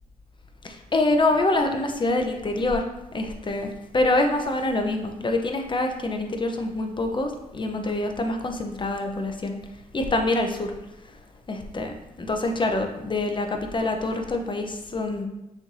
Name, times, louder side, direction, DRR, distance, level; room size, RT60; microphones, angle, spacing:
voice 1, 0.6-2.8 3.1-3.7 3.9-9.6 9.9-10.7 11.5-15.3, left 2 dB, 35° left, 4 dB, 0.7 m, -25 dB
6.4 x 3.1 x 2.7 m, 0.92 s
cardioid pair, 60°, 14 cm